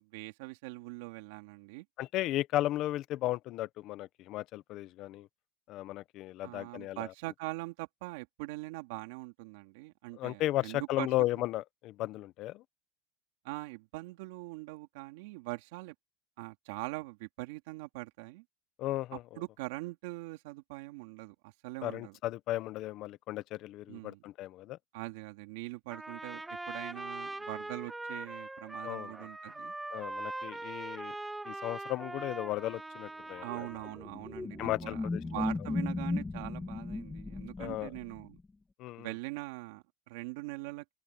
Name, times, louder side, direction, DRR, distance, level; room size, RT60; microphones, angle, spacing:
voice 1, 0.0-1.8 6.4-11.1 13.4-15.9 16.4-18.4 19.4-22.2 23.9-24.2 24.9-29.7 33.4-38.4 39.0-40.9, right 21 dB, 75° right, 2.7 m, -42 dB
voice 2, 2.0-5.3 5.7-7.1 10.1-12.6 18.8-19.2 21.8-24.8 28.8-29.1 29.9-31.1 31.4-33.7 34.6-35.2 37.6-37.9 38.8-39.1, left 15 dB, 45° left, 1.0 m, -35 dB
Trumpet, 25.9-34.0, right 2 dB, 5° right, 1.6 m, -42 dB
sound 1, 33.4-38.4, left 3 dB, 10° left, 2.1 m, -37 dB
open air
supercardioid pair, 155°, 0 cm